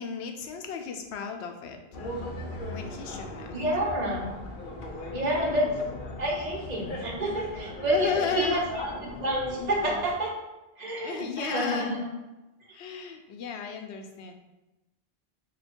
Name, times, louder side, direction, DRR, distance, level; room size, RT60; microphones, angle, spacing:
voice 1, 0.0-1.8 2.7-3.5 5.3-5.6 7.9-8.7 11.0-12.0 12.7-14.3, left 6 dB, 90° left, 4 dB, 0.9 m, -34 dB
sound 1, 1.9-10.1, left 1 dB, 60° left, 0.7 m, -38 dB
voice 2, 3.5-4.3 5.1-5.7 6.2-8.6 9.0-10.3 10.8-12.0, right 1 dB, 45° right, -2 dB, 0.9 m, -28 dB
3.6 x 2.3 x 4.3 m, 1.0 s
omnidirectional pair, 1.1 m